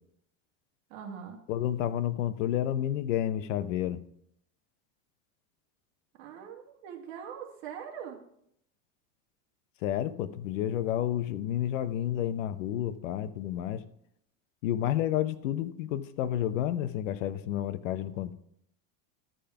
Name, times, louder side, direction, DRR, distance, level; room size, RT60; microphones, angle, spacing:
voice 1, 0.9-1.4 6.1-8.2, right 8 dB, 55° right, 1 dB, 2.1 m, -42 dB
voice 2, 1.5-4.0 9.8-13.8 14.6-18.3, left 11 dB, 85° left, 13 dB, 0.9 m, -30 dB
12.5 x 5.2 x 5.7 m, 0.71 s
supercardioid pair, 170°, 37 cm